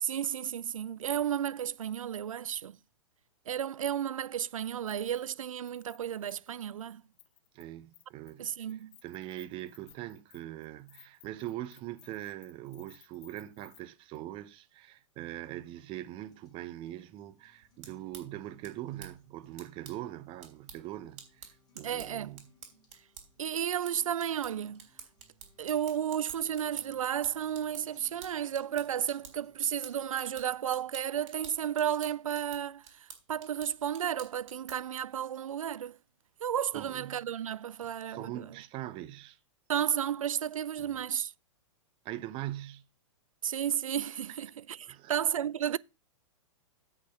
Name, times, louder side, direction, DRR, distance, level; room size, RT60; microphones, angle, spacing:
voice 1, 0.0-2.8 3.5-7.0 8.4-9.0 21.8-22.4 23.4-24.9 25.6-32.8 33.3-36.0 36.4-38.6 39.7-41.3 43.4-45.8, right 9 dB, 90° right, 0.4 m, -33 dB
Keys jangling, 4.8-5.4 5.7-7.6 7.9-8.4 8.7-13.8 14.1-14.2, left 15 dB, 45° left, 1.0 m, -60 dB
voice 2, 7.5-8.5 9.0-22.5 36.7-37.3 38.1-39.4 40.8-41.0 42.0-42.8 44.9-45.1, right 14 dB, 30° right, 0.8 m, -42 dB
sound 1, 15.2-31.2, left 3 dB, 25° left, 2.6 m, -67 dB
sound 2, 17.6-35.0, right 7 dB, 60° right, 3.3 m, -52 dB
8.5 x 5.6 x 5.8 m
hypercardioid pair, 125°, 17 cm